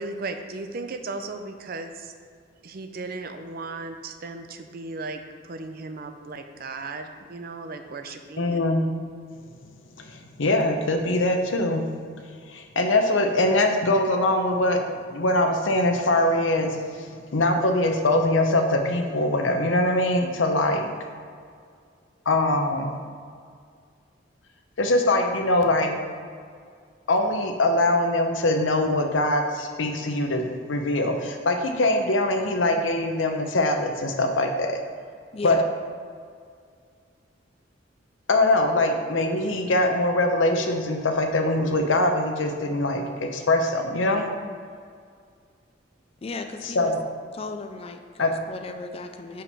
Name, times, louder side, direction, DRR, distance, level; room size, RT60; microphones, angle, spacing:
voice 1, 0.0-2.1 2.6-8.6 44.1-44.3, right 3 dB, 50° right, 7 dB, 0.5 m, -36 dB
voice 2, 8.4-8.9 10.0-11.9 12.5-14.8 15.1-16.8 17.3-20.9 22.3-23.0 24.8-25.9 27.1-34.8 35.4-35.7 38.3-44.2 46.6-47.0 48.2-48.3, left 2 dB, 90° left, 4 dB, 0.8 m, -22 dB
voice 3, 35.3-35.6 46.2-46.9 47.3-49.4, left 3 dB, 30° left, 6 dB, 0.4 m, -36 dB
5.6 x 5.2 x 5.4 m, 2.1 s
head